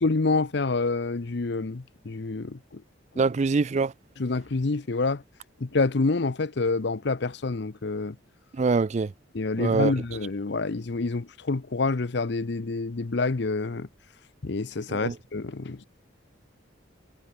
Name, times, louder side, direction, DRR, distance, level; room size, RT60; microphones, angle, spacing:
voice 1, 0.0-2.8 4.2-5.2 5.6-8.2 9.3-13.9 14.4-15.8, left 3 dB, 55° left, 0.7 m, -27 dB
voice 2, 3.2-3.9 8.5-9.1 9.6-9.9 14.9-15.2, right 4 dB, 35° right, 0.3 m, -24 dB
head